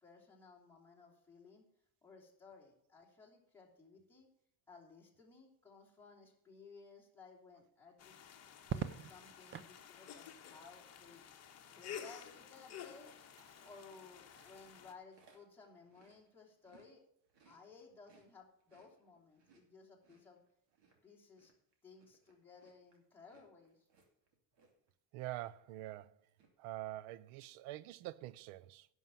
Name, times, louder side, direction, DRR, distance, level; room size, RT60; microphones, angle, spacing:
voice 1, 0.0-1.6 2.0-4.3 4.7-8.2 8.7-11.2 11.7-13.1 13.6-17.0 17.4-20.4 21.0-21.5 21.8-23.9, left 4 dB, 5° left, 2.9 m, -59 dB
sound 1, 8.0-14.9, left 8 dB, 30° left, 1.3 m, -52 dB
Crackle, 8.6-9.8 11.4-11.9, right 8 dB, 30° right, 0.4 m, -42 dB
Chewing mastication, 13.2-16.9 17.2-24.9 25.2-25.5 25.8-26.5, right 4 dB, 55° right, 2.7 m, -70 dB
voice 2, 25.1-26.2 26.6-28.9, right 16 dB, 80° right, 0.7 m, -45 dB
11.0 x 5.6 x 7.6 m
cardioid pair, 140°, 49 cm